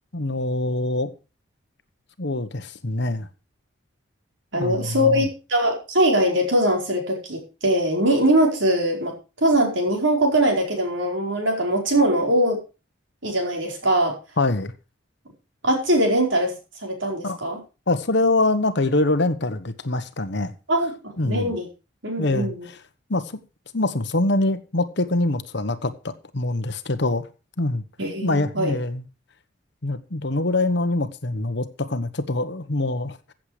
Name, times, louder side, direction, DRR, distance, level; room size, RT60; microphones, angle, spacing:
voice 1, 0.1-1.1 2.2-3.3 4.6-5.2 14.4-14.7 17.2-17.4 17.9-20.5 21.2-21.5 22.2-22.8 23.1-23.4 23.7-27.2 27.6-27.8 28.2-29.0 29.8-33.3, left 2 dB, 60° left, 1.2 m, -24 dB
voice 2, 4.5-9.1 9.4-12.6 13.2-14.1 15.6-16.5 16.8-17.6 20.7-21.7 22.0-22.6 28.0-28.8, right 1 dB, 65° right, 4.7 m, -21 dB
15.0 x 7.6 x 5.0 m
head